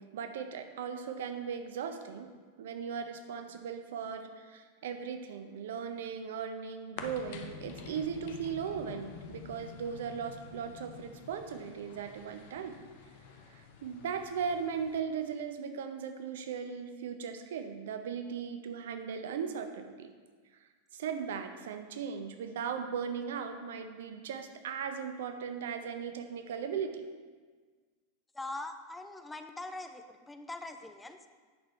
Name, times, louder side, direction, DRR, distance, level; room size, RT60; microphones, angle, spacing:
voice 1, 0.0-2.3 2.6-12.8 13.5-20.1 20.9-27.0, right 7 dB, 65° right, 7 dB, 0.6 m, -38 dB
sound 1, 7.0-15.0, left 6 dB, 55° left, 0.7 m, -48 dB
voice 2, 28.3-31.2, left 2 dB, 10° left, 7 dB, 0.5 m, -42 dB
8.7 x 6.2 x 3.2 m, 1.5 s
figure-of-eight pair, 90°, 0 cm